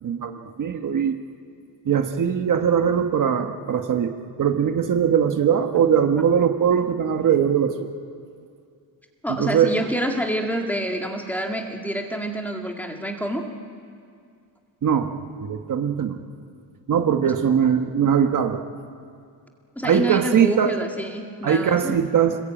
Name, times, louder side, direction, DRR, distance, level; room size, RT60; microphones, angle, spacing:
voice 1, 0.0-1.2 1.8-7.9 9.3-9.7 14.8-16.2 16.9-18.6 19.8-20.7 21.4-22.4, right 8 dB, 45° right, 5 dB, 1.3 m, -21 dB
voice 2, 9.2-13.4 17.3-17.4 19.8-22.0, equal, 5° left, 2 dB, 2.0 m, -27 dB
26.0 x 21.5 x 8.9 m, 2.3 s
cardioid pair, 155°, 42 cm